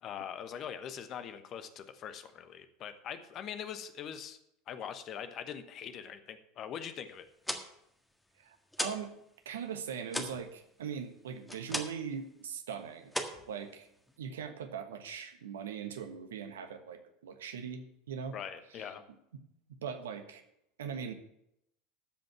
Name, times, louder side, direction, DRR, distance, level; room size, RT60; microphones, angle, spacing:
voice 1, 0.0-4.4 4.7-7.3 18.3-19.0, left 8 dB, 40° left, 10 dB, 1.1 m, -42 dB
sound 1, 7.2-9.1 9.4-12.1 12.4-12.7 13.1-14.2, left 1 dB, 5° left, 1.6 m, -38 dB
voice 2, 8.4-9.1 9.4-13.1 13.5-13.9 14.2-18.3 18.7-18.9 19.8-20.4 20.8-21.1, right 7 dB, 75° right, 7 dB, 1.2 m, -40 dB
14.0 x 5.3 x 7.5 m, 0.79 s
figure-of-eight pair, 75°, 0 cm